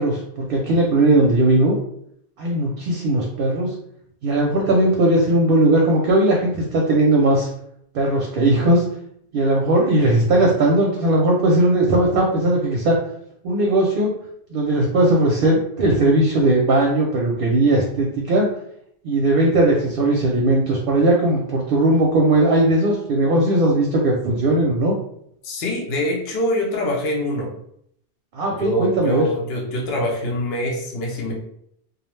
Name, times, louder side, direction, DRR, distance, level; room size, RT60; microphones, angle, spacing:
voice 1, 0.0-1.8 2.4-3.7 4.2-7.5 7.9-8.8 9.3-13.0 13.4-14.1 14.5-18.5 19.0-24.9 28.3-29.2, right 1 dB, 65° right, -1 dB, 0.7 m, -18 dB
voice 2, 25.4-27.5 28.5-31.3, left 1 dB, 70° left, -1 dB, 0.8 m, -24 dB
2.4 x 2.0 x 3.0 m, 0.70 s
omnidirectional pair, 1.1 m